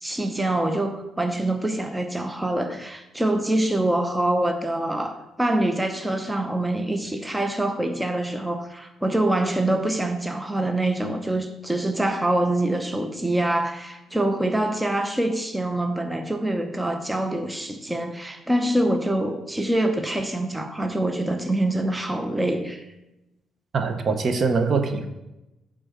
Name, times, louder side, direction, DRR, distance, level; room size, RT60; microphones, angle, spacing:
voice 1, 0.0-22.9, right 1 dB, 10° right, 6 dB, 0.7 m, -25 dB
voice 2, 23.7-25.1, right 4 dB, 50° right, 7 dB, 0.9 m, -23 dB
8.8 x 3.8 x 6.6 m, 0.96 s
cardioid pair, 90°, 0 cm